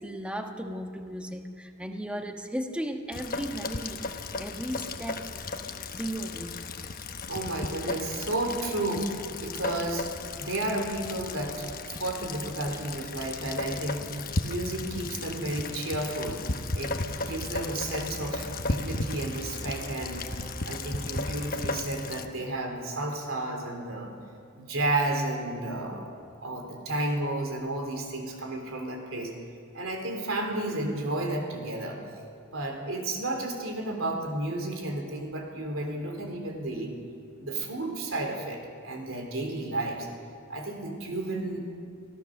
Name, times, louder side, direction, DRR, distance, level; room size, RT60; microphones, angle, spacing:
voice 1, 0.0-5.2 5.9-6.6, right 1 dB, 5° right, 4 dB, 1.2 m, -36 dB
Rain, 3.1-22.3, left 3 dB, 45° left, 1.1 m, -35 dB
voice 2, 7.3-10.1 10.4-14.1 14.4-16.4 16.7-20.2 20.7-24.1 24.5-29.3 29.7-32.0 32.5-36.9 37.4-40.1 40.5-41.6, right 2 dB, 70° right, 2 dB, 3.8 m, -32 dB
sound 1, 17.1-21.5, right 1 dB, 45° right, 2.3 m, -43 dB
24.0 x 16.0 x 6.7 m, 2.4 s
head